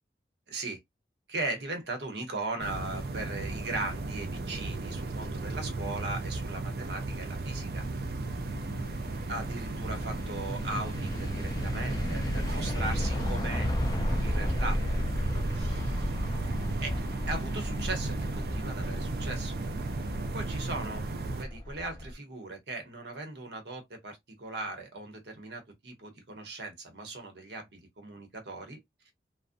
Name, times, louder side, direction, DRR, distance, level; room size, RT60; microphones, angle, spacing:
voice 1, 0.5-0.8 1.3-7.8 9.3-13.7 14.2-14.8 15.2-16.1 16.8-17.0 17.3-19.5 20.3-28.8 29.1-29.2, right 2 dB, 75° right, 0.9 m, -38 dB
sound 1, 2.6-21.4, right 3 dB, 60° right, 0.4 m, -35 dB
sound 2, 6.6-22.1, equal, 20° left, 0.4 m, -34 dB
2.5 x 2.0 x 2.5 m
head